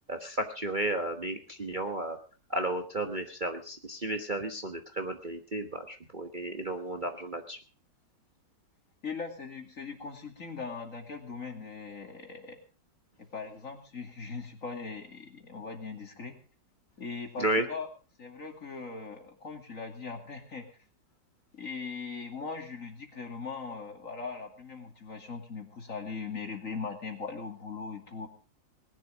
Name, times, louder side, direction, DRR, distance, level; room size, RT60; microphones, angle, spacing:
voice 1, 0.1-2.2 2.5-7.6 17.4-17.6, right 1 dB, 30° right, 5 dB, 1.2 m, -33 dB
voice 2, 9.0-12.6 13.2-16.4 17.0-17.9 18.2-20.7 21.5-28.3, left 4 dB, 45° left, 4 dB, 2.8 m, -40 dB
20.0 x 11.0 x 5.0 m, 0.37 s
omnidirectional pair, 2.0 m